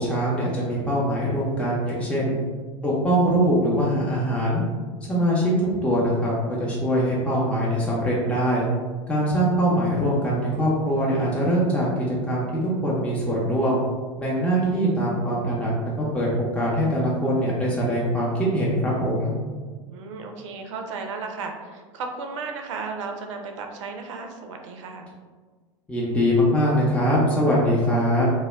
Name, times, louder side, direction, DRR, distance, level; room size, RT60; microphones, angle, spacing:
voice 1, 0.0-2.4 2.8-4.6 5.1-8.7 9.1-13.8 14.2-15.7 16.1-19.3 25.9-28.3, equal, 5° left, -6 dB, 0.6 m, -22 dB
voice 2, 19.9-25.1, right 4 dB, 70° right, 4 dB, 0.4 m, -35 dB
2.1 x 2.1 x 3.2 m, 1.5 s
hypercardioid pair, 85°, 16 cm